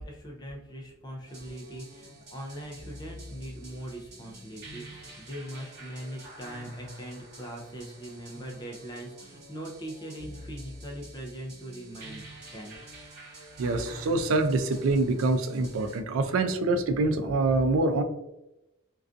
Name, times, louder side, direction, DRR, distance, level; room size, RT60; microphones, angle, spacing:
voice 1, 0.0-12.2 12.5-12.8, right 1 dB, 20° left, 0 dB, 0.4 m, -41 dB
sound 1, 1.3-16.0, right 1 dB, 55° right, 0.8 m, -47 dB
voice 2, 13.6-18.0, right 2 dB, 90° right, 7 dB, 0.4 m, -25 dB
2.4 x 2.3 x 2.4 m, 0.90 s
head